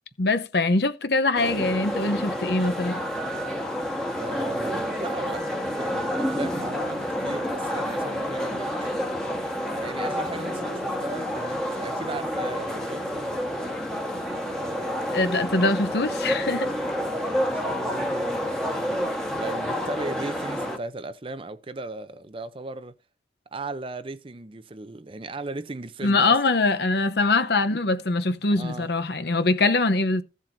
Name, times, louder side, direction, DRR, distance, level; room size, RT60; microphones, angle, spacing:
voice 1, 0.2-3.0 15.1-16.7 26.0-30.2, left 3 dB, 60° left, 0.8 m, -23 dB
sound 1, 1.4-20.8, equal, 5° left, 1.3 m, -29 dB
voice 2, 4.2-8.9 9.6-13.4 14.5-15.4 17.0-19.0 19.3-23.0 23.5-26.4 28.6-28.9, right 2 dB, 30° right, 0.5 m, -37 dB
15.5 x 7.3 x 2.6 m
head